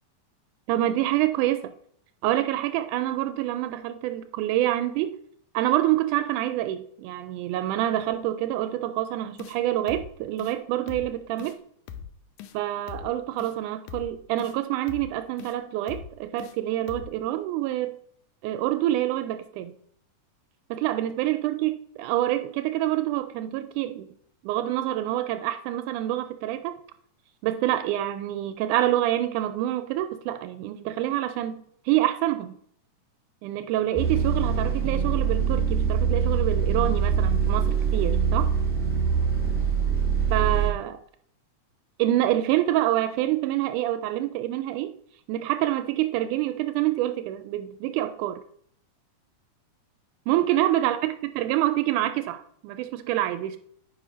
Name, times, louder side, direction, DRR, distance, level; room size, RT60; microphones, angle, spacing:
voice 1, 0.7-1.7 2.2-5.2 5.5-11.6 12.5-18.0 18.4-19.7 20.7-24.1 24.4-26.8 27.4-32.5 33.4-38.5 40.3-41.0 42.0-44.9 45.3-48.4 50.3-53.6, right 14 dB, 85° right, 9 dB, 2.0 m, -26 dB
sound 1, 9.4-9.6 9.9-10.1 10.4-10.6 10.9-11.1 11.4-11.6 11.9-12.1 12.4-12.6 12.9-13.1 13.4-13.5 13.9-14.1 14.4-14.6 14.9-15.1 15.4-15.6 15.9-16.1 16.4-16.6 16.9-17.1, left 8 dB, 80° left, 2.1 m, -40 dB
sound 2, 34.0-40.7, right 6 dB, 5° right, 1.8 m, -24 dB
9.1 x 5.5 x 5.0 m, 0.66 s
omnidirectional pair, 3.6 m